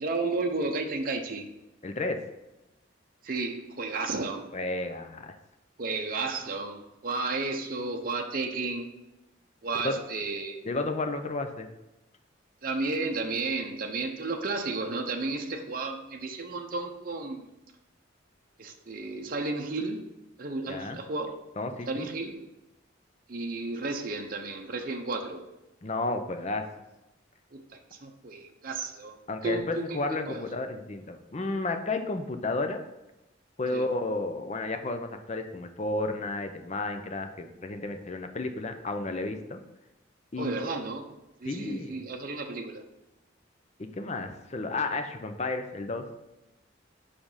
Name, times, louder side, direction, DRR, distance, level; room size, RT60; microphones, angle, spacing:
voice 1, 0.0-1.5 3.2-4.5 5.8-8.9 9.6-10.7 12.6-17.5 18.6-20.1 20.4-21.4 21.9-22.5 23.3-25.4 27.5-27.6 27.9-30.4 33.7-33.9 40.4-41.1 41.4-42.8, right 3 dB, 45° right, 3 dB, 0.7 m, -33 dB
voice 2, 1.8-2.2 4.5-5.3 9.8-10.0 10.6-11.7 20.7-21.0 21.6-22.1 25.8-26.6 29.3-32.8 33.6-39.6 40.3-40.5 41.4-41.9 44.0-46.0, left 2 dB, 35° left, 7 dB, 0.6 m, -32 dB
5.1 x 5.0 x 5.5 m, 0.94 s
head